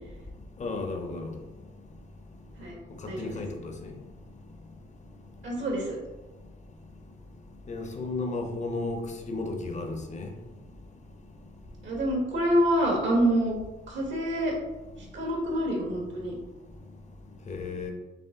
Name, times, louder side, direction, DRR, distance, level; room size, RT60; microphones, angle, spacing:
voice 1, 0.6-1.3 3.0-3.9 7.7-10.3 17.5-17.9, left 3 dB, 35° left, 4 dB, 0.8 m, -34 dB
voice 2, 3.1-3.4 5.4-6.0 11.8-13.5 13.9-14.5 15.1-16.3, right 1 dB, 65° right, -1 dB, 1.5 m, -26 dB
5.8 x 2.1 x 3.6 m, 1.1 s
cardioid pair, 90°, 20 cm